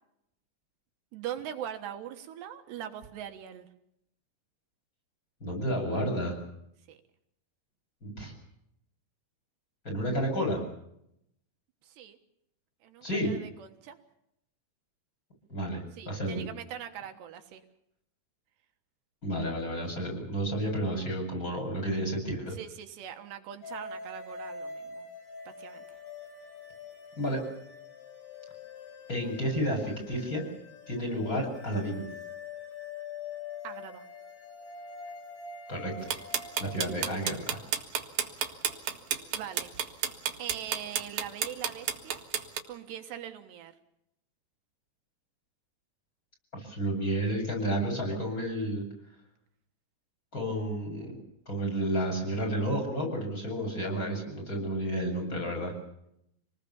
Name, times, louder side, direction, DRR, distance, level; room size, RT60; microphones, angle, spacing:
voice 1, 1.1-3.7 6.9-7.0 11.8-12.2 12.8-14.0 16.0-17.6 22.5-25.1 25.5-25.8 33.6-34.1 36.9-37.2 39.3-39.8 40.4-42.2 42.7-43.7, right 10 dB, 80° right, 6 dB, 3.5 m, -41 dB
voice 2, 5.4-6.4 8.0-8.3 9.8-10.6 13.0-13.3 15.5-16.4 19.2-22.5 27.2-27.4 29.1-30.4 30.9-32.0 35.7-36.1 36.6-37.6 46.5-48.8 50.3-51.2 51.5-55.7, right 1 dB, 20° left, 1 dB, 8.3 m, -31 dB
sound 1, 23.6-36.8, left 5 dB, 60° left, 6.7 m, -44 dB
sound 2, 36.1-42.6, right 9 dB, 60° right, 3.3 m, -30 dB
28.0 x 20.0 x 7.1 m, 0.77 s
omnidirectional pair, 4.9 m